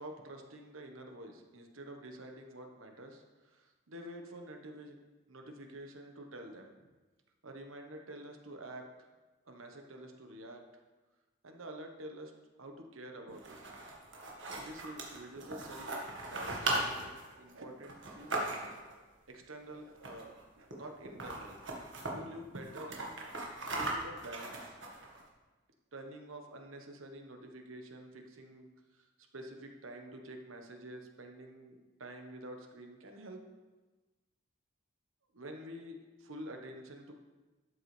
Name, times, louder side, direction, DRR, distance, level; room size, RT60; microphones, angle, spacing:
voice 1, 0.0-5.0 5.3-6.7 7.4-9.1 9.5-10.6 11.4-12.3 12.6-14.0 14.5-18.4 18.7-19.0 19.3-21.6 22.1-23.3 23.7-25.2 25.9-29.1 29.3-33.4 35.3-37.1, right 1 dB, 85° right, 3 dB, 1.2 m, -48 dB
sound 1, 13.3-18.9 19.9-20.4 20.7-20.8 21.0-22.1 22.5-25.2, right 2 dB, 65° right, 1.7 m, -38 dB
12.0 x 7.9 x 3.4 m, 1.2 s
head